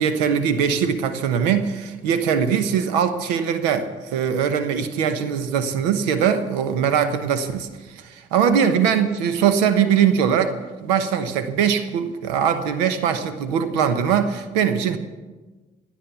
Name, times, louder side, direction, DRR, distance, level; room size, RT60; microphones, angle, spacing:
voice 1, 0.0-15.0, right 7 dB, 85° right, 10 dB, 1.1 m, -21 dB
17.0 x 9.6 x 7.0 m, 1.2 s
hypercardioid pair, 50°, 21 cm